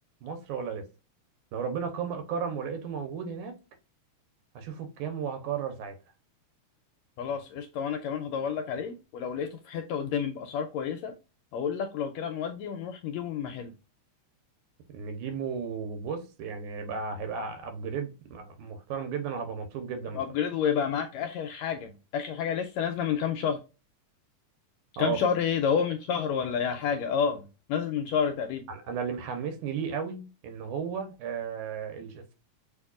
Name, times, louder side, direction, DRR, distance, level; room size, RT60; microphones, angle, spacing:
voice 1, 0.2-0.9 1.5-3.6 4.6-6.0 14.9-20.2 25.0-25.2 28.7-32.3, right 6 dB, 85° right, 2.3 m, -34 dB
voice 2, 7.2-11.1 11.5-13.7 20.1-23.6 25.0-28.7, left 7 dB, 80° left, 1.6 m, -30 dB
6.4 x 2.9 x 2.4 m
omnidirectional pair, 3.5 m